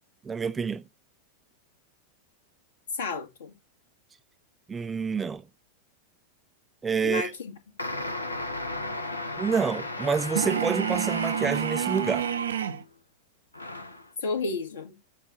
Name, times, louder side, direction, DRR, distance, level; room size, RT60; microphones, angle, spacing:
voice 1, 0.2-0.8 4.7-5.4 6.8-7.3 9.4-12.3, right 5 dB, 15° right, 0.4 m, -28 dB
voice 2, 2.9-3.6 7.0-8.0 14.2-15.0, left 3 dB, 60° left, 1.7 m, -32 dB
sound 1, 7.8-12.8 13.5-14.1, left 2 dB, 80° left, 0.8 m, -35 dB
sound 2, 10.4-12.8, right 9 dB, 65° right, 0.5 m, -29 dB
7.2 x 2.5 x 5.7 m
figure-of-eight pair, 90°, 0 cm